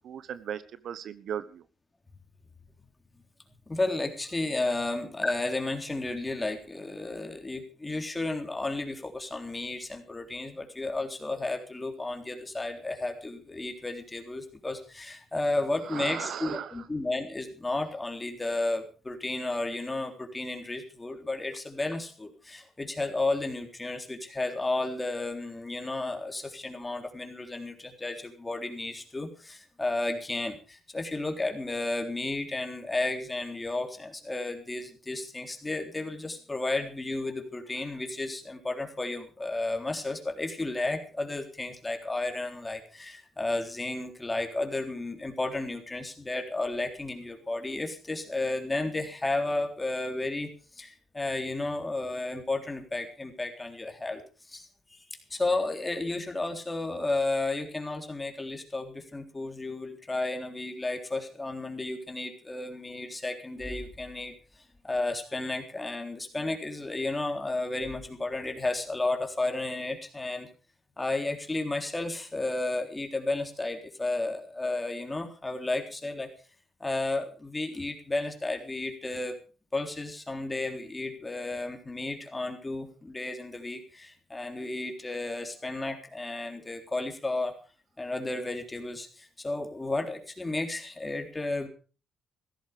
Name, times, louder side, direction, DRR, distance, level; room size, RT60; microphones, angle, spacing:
voice 1, 0.0-1.6 15.8-16.8, right 9 dB, 70° right, 15 dB, 1.0 m, -37 dB
voice 2, 3.7-50.5 50.8-54.2 54.5-64.3 64.8-70.5 71.0-76.3 76.8-79.4 79.7-87.6 88.0-91.7, left 2 dB, 20° left, 5 dB, 3.6 m, -33 dB
16.0 x 13.5 x 5.1 m, 0.37 s
cardioid pair, 90°, 0 cm